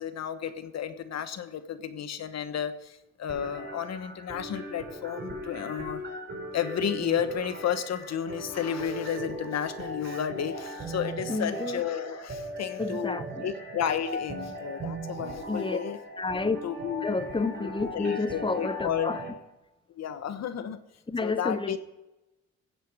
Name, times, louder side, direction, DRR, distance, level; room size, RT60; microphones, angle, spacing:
voice 1, 0.0-6.0 6.5-16.0 16.6-17.2 17.6-17.7 17.9-19.1 19.9-20.8 21.2-21.8, left 9 dB, 60° left, 1.2 m, -32 dB
sound 1, 3.3-19.3, right 1 dB, 35° right, 4.3 m, -38 dB
voice 2, 11.3-11.8 12.8-13.5 15.5-15.8 16.2-16.6 17.0-19.2 21.1-21.8, left 3 dB, 15° left, 0.8 m, -30 dB
15.0 x 8.0 x 6.2 m
cardioid pair, 90°, 30 cm